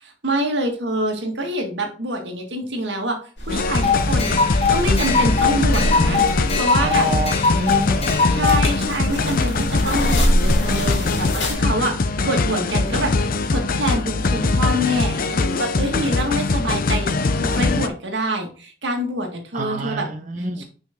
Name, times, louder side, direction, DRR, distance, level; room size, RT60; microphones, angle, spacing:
voice 1, 0.0-3.2 3.4-6.2 6.5-7.1 8.3-13.1 13.5-20.1 20.4-20.6, right 1 dB, 75° right, 3 dB, 2.0 m, -26 dB
sound 1, 3.4-11.5, equal, 75° left, 2.2 m, -26 dB
sound 2, 3.5-17.9, left 3 dB, 50° left, 0.6 m, -22 dB
sound 3, 3.7-8.7, left 5 dB, 35° left, 1.3 m, -22 dB
voice 2, 6.8-8.2 16.5-16.6 19.5-20.6, right 2 dB, 45° right, 6 dB, 1.2 m, -27 dB
6.2 x 5.4 x 3.7 m, 0.38 s
head